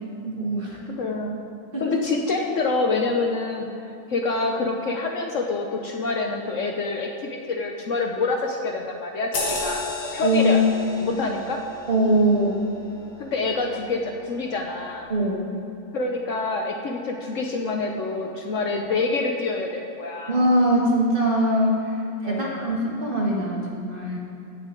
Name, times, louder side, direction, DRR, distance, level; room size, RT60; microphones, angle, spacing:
voice 1, 0.2-0.8 1.7-2.0 10.2-10.6 11.9-12.6 15.1-15.5 20.3-21.8 22.2-24.2, right 1 dB, 35° right, -3 dB, 1.6 m, -22 dB
voice 2, 1.0-1.4 1.8-9.8 10.1-10.6 11.0-11.6 13.2-15.1 15.9-20.4 22.2-22.7, left 3 dB, 60° left, 2 dB, 1.0 m, -27 dB
sound 1, 9.3-14.3 14.7-14.9, left 2 dB, 80° left, 2.0 m, -34 dB
16.5 x 6.6 x 3.8 m, 2.9 s
omnidirectional pair, 1.7 m